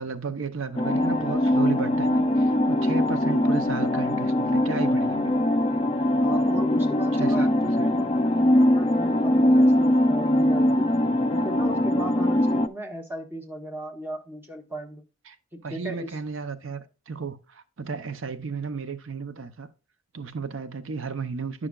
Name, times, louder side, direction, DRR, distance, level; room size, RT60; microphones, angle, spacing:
voice 1, 0.0-5.5 7.1-7.9 15.3-15.4 15.6-19.7 20.1-21.7, right 5 dB, 75° right, 0.7 m, -33 dB
sound 1, 0.8-12.7, left 1 dB, 25° left, 0.4 m, -22 dB
voice 2, 6.2-10.9 11.3-15.0 15.5-16.2, right 1 dB, 10° right, 1.1 m, -37 dB
9.9 x 6.2 x 2.3 m
head